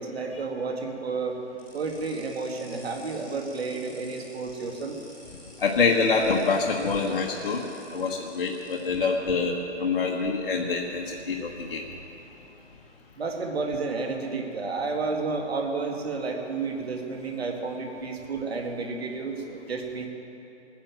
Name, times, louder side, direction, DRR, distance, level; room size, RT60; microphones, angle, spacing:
voice 1, 0.0-1.4 1.7-5.0 13.2-20.1, right 4 dB, 55° right, 2 dB, 2.5 m, -31 dB
sound 1, 1.6-9.0, left 1 dB, 5° right, 2.7 m, -51 dB
voice 2, 5.6-7.6 7.9-11.9, left 4 dB, 45° left, 0 dB, 1.3 m, -26 dB
18.0 x 10.0 x 7.6 m, 2.9 s
hypercardioid pair, 160°, 36 cm